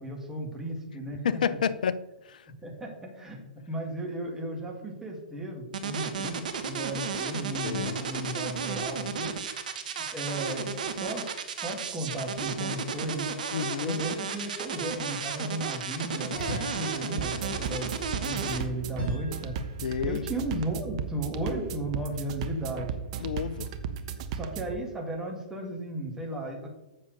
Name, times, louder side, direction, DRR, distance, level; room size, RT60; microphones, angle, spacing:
voice 1, 0.0-1.4 2.6-9.3 9.8-13.3 13.8-19.6 20.0-23.3 24.3-26.7, right 1 dB, 10° right, 0 dB, 2.4 m, -35 dB
voice 2, 1.2-2.5 7.6-8.0 13.5-14.0 19.8-20.2 23.2-23.7, left 7 dB, 60° left, 15 dB, 0.6 m, -30 dB
sound 1, 5.7-18.6, right 6 dB, 60° right, 1.3 m, -33 dB
sound 2, 14.1-14.9 16.3-19.9, equal, 20° left, 4.1 m, -40 dB
sound 3, 17.2-24.8, right 7 dB, 45° right, 0.9 m, -36 dB
7.7 x 6.5 x 6.7 m, 0.97 s
figure-of-eight pair, 115°, 5 cm